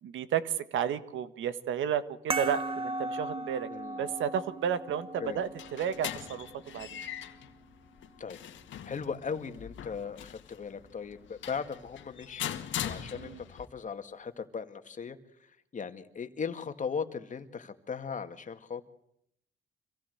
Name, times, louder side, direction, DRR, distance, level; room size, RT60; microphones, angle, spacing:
voice 1, 0.0-3.7 4.0-7.0 13.1-13.4, right 8 dB, 80° right, 13 dB, 1.6 m, -32 dB
sound 1, 2.3-7.4, right 2 dB, 25° right, 1.7 m, -38 dB
voice 2, 3.7-4.1 5.2-5.4 8.2-8.4 8.8-15.2 15.7-18.9, left 6 dB, 40° left, 8 dB, 2.1 m, -38 dB
sound 2, 5.2-13.7, left 10 dB, 75° left, 2.0 m, -41 dB
26.0 x 16.5 x 8.0 m, 0.74 s
cardioid pair, 90°, 20 cm